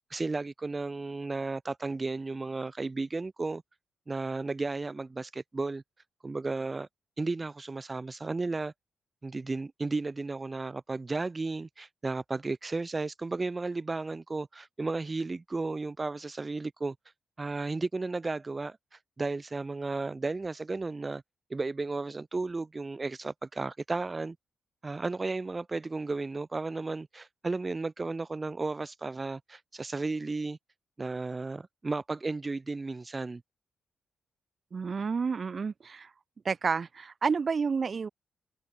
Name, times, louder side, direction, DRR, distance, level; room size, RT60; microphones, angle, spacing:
voice 1, 0.0-3.6 4.1-5.8 6.2-6.9 7.2-8.7 9.2-16.9 17.4-18.8 19.2-21.2 21.5-24.4 24.8-30.6 31.0-33.4, right 3 dB, 25° right, 3.3 m, -34 dB
voice 2, 34.7-36.1 36.4-38.1, right 5 dB, 45° right, 0.7 m, -30 dB
cardioid pair, 90°, 0 cm